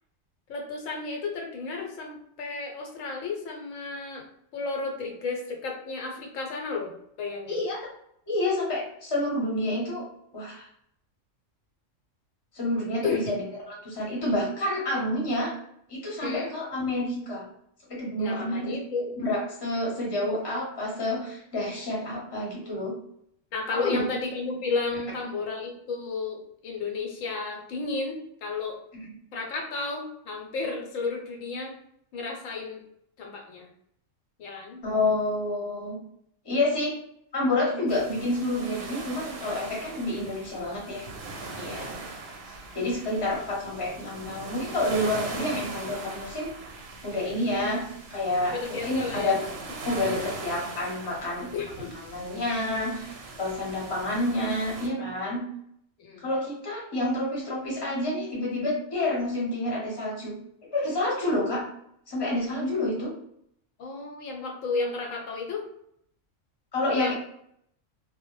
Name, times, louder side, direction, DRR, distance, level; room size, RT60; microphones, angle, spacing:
voice 1, 0.5-4.2 4.5-6.9 7.2-7.6 13.0-13.2 16.2-16.5 18.2-19.1 23.5-28.8 29.3-31.7 32.1-32.8 33.2-33.7 34.4-34.8 41.7-41.9 48.5-49.4 51.5-52.0 56.0-56.3 63.8-65.6 67.0-67.1, left 4 dB, 85° left, 1 dB, 1.0 m, -32 dB
voice 2, 8.3-10.1 10.3-10.7 12.5-15.5 15.9-17.5 17.9-18.7 19.2-23.0 23.7-24.1 28.9-29.1 34.8-36.0 36.4-37.0 37.3-41.0 41.5-41.9 42.5-46.5 47.0-49.4 49.8-51.5 51.9-55.5 56.2-60.3 60.7-61.7 62.1-63.1 66.7-67.1, left 1 dB, 25° left, -4 dB, 0.7 m, -29 dB
sound 1, 37.9-54.9, right 3 dB, 65° right, 0.7 m, -40 dB
2.1 x 2.0 x 3.0 m, 0.72 s
omnidirectional pair, 1.3 m